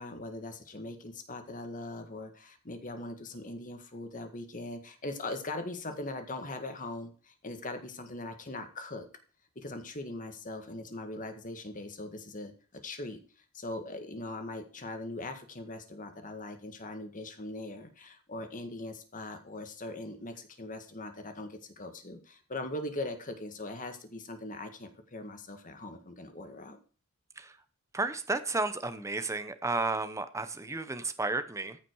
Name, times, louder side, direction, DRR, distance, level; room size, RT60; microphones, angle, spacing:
voice 1, 0.0-9.1 9.6-13.2 13.5-26.8, left 2 dB, 35° left, 7 dB, 1.8 m, -40 dB
voice 2, 27.9-31.8, right 3 dB, 15° right, 10 dB, 0.8 m, -32 dB
14.5 x 5.8 x 4.7 m, 0.39 s
head